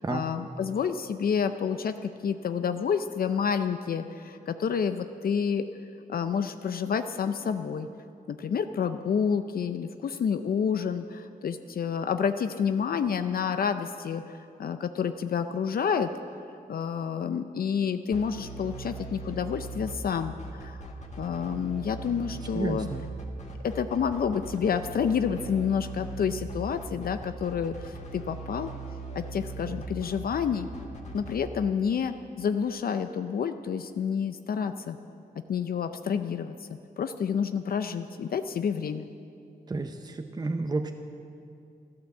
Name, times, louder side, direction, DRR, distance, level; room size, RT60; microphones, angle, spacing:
voice 1, 0.0-5.7 6.1-7.9 8.3-16.1 16.7-20.8 21.2-22.9 23.6-28.7 29.1-30.7 31.1-35.0 35.5-36.5 37.0-39.1, left 7 dB, 65° left, 9 dB, 0.6 m, -29 dB
sound 1, 18.1-31.4, right 3 dB, 45° left, 1.9 m, -40 dB
voice 2, 22.5-23.0 39.7-40.9, right 3 dB, 25° right, 5 dB, 0.7 m, -31 dB
13.0 x 13.0 x 7.2 m, 2.5 s
cardioid pair, 90°, 16 cm